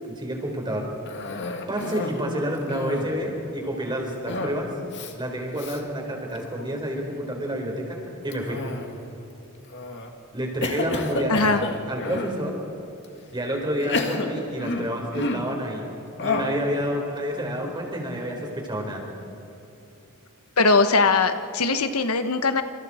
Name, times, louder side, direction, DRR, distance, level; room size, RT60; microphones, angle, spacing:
voice 1, 0.1-0.9 1.7-4.7 5.2-8.6 10.3-12.6 13.3-19.1, equal, 20° right, 0 dB, 4.5 m, -29 dB
Cough, 1.1-2.2 2.6-3.2 4.3-4.6 4.9-5.1 5.6-5.8 6.3-6.8 8.3-9.1 9.7-10.1 10.6-12.4 13.0-13.1 13.8-15.6 16.2-16.6, left 2 dB, 55° left, 2.0 m, -30 dB
voice 2, 11.3-11.6 20.6-22.6, left 3 dB, 80° left, 8 dB, 1.2 m, -20 dB
28.0 x 28.0 x 4.4 m, 2.8 s
head